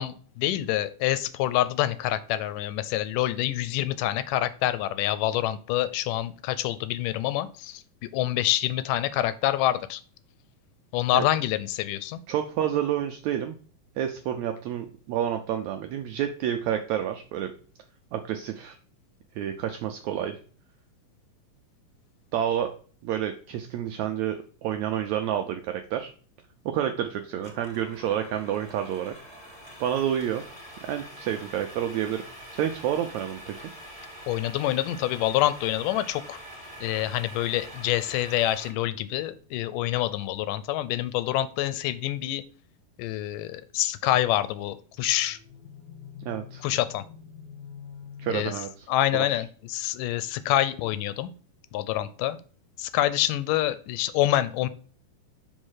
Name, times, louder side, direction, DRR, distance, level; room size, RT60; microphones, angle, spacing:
voice 1, 0.0-10.0 10.9-12.2 34.3-36.4 36.8-42.4 43.0-45.4 46.6-47.0 48.3-48.5 48.9-51.3 51.7-52.4 52.8-54.7, left 14 dB, 80° left, 14 dB, 2.1 m, -26 dB
voice 2, 12.3-13.6 14.0-17.5 18.1-18.8 19.4-20.4 22.3-22.7 23.0-26.1 26.7-29.1 29.8-30.4 30.8-32.2 32.5-33.6 46.2-46.6 48.2-48.9 49.1-49.4, right 10 dB, 80° right, 6 dB, 1.6 m, -29 dB
sound 1, 27.4-38.7, equal, 15° left, 1.8 m, -45 dB
sound 2, 36.6-38.8 44.9-48.4, left 7 dB, 45° left, 1.5 m, -47 dB
6.4 x 4.2 x 6.3 m, 0.41 s
omnidirectional pair, 3.9 m